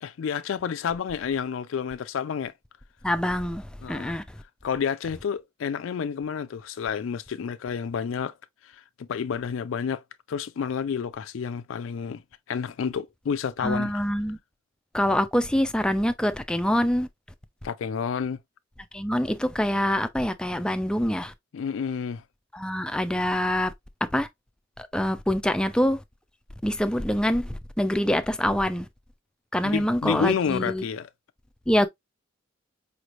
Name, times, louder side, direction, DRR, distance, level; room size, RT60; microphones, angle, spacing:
voice 1, 0.0-2.5 3.8-4.2 4.6-8.3 8.6-12.2 12.5-13.9 17.6-18.4 21.5-22.2 29.6-31.1, left 7 dB, 80° left, 0.4 m, -30 dB
voice 2, 3.0-4.2 13.6-14.4 14.9-17.1 18.9-21.3 22.5-23.7 24.1-24.3 24.8-26.0 26.6-28.9 29.5-30.8 31.7-31.9, equal, 5° left, 0.3 m, -25 dB
5.0 x 3.1 x 2.4 m
head